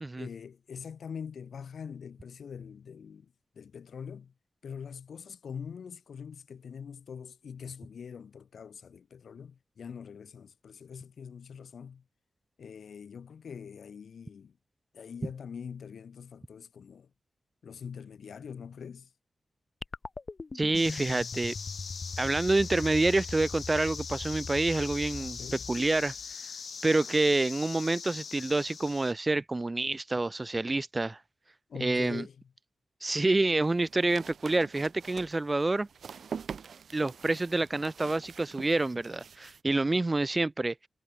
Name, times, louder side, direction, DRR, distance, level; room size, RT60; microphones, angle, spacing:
voice 1, 0.2-4.3 4.6-12.0 12.6-14.6 14.9-17.1 17.6-19.1 25.2-25.7 31.7-32.4, left 7 dB, 80° left, 2.3 m, -43 dB
sound 1, 19.8-26.3, left 3 dB, 35° left, 0.9 m, -41 dB
voice 2, 20.5-21.5 22.2-25.4 25.7-26.1 26.8-31.2 31.8-32.2 33.0-35.9 36.9-40.7, right 2 dB, 25° right, 0.8 m, -27 dB
sound 2, 20.7-29.1, left 6 dB, 65° left, 2.3 m, -41 dB
sound 3, 33.5-39.6, right 6 dB, 75° right, 2.9 m, -45 dB
wide cardioid pair, 130°, 0 cm